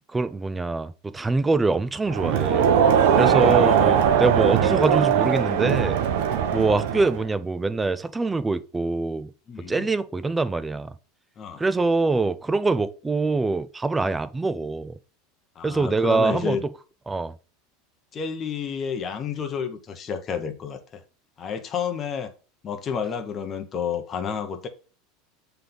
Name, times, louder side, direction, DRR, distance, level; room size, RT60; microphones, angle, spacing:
voice 1, 0.1-2.7 3.2-6.0 6.5-9.3 9.7-10.9 11.6-14.9 15.6-16.6 17.1-17.3, right 3 dB, 10° right, 0.4 m, -24 dB
Crowd, 2.1-7.3, right 8 dB, 65° right, 0.8 m, -20 dB
voice 2, 3.4-3.8 4.1-4.3 6.3-6.5 9.5-9.9 11.4-11.6 14.0-14.2 15.6-16.6 18.1-21.0 21.4-22.3 22.6-24.7, left 6 dB, 25° left, 1.0 m, -31 dB
7.6 x 3.4 x 3.9 m
supercardioid pair, 145°, 0 cm